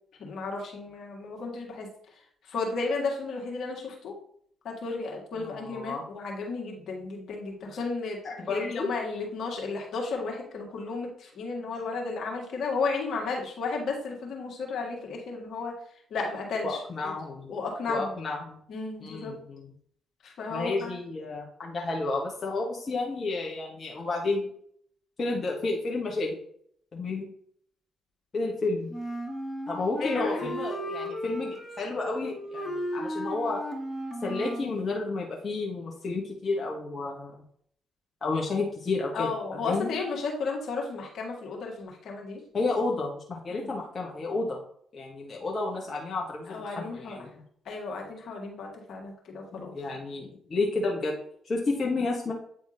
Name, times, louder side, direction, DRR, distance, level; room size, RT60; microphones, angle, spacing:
voice 1, 0.2-1.9 2.5-4.1 4.6-8.2 8.5-15.7 16.1-16.8 17.0-17.1 17.5-18.1 18.7-19.3 20.2-20.9 30.0-30.5 39.1-42.4 43.5-43.7 46.5-47.2 47.7-49.7, left 4 dB, 60° left, -1 dB, 1.8 m, -33 dB
voice 2, 5.3-6.0 8.2-8.9 16.6-17.5 17.9-18.6 19.0-19.7 20.5-24.5 25.2-26.4 26.9-27.3 28.3-28.9 29.7-33.6 34.2-37.4 38.2-40.0 42.5-44.6 44.9-47.3 49.5-51.2 51.4-52.3, left 3 dB, 40° left, -2 dB, 1.4 m, -31 dB
Wind instrument woodwind instrument, 28.9-34.7, equal, 10° left, 2.0 m, -35 dB
8.9 x 3.5 x 4.0 m, 0.64 s
hypercardioid pair, 45°, 0 cm